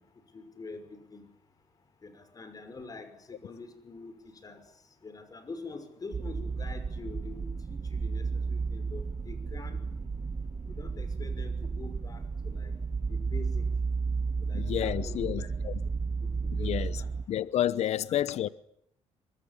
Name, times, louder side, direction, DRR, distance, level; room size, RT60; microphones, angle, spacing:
voice 1, 0.3-1.2 2.0-4.6 5.0-10.0 10.7-12.7 13.1-13.7 14.4-15.5 16.6-17.1, left 3 dB, 30° left, 5.9 m, -45 dB
sound 1, 6.1-17.2, right 4 dB, 30° right, 1.3 m, -33 dB
voice 2, 14.5-15.8 16.5-17.0 17.3-18.5, left 11 dB, 70° left, 1.0 m, -30 dB
23.5 x 21.0 x 10.0 m
cardioid pair, 105°, 12 cm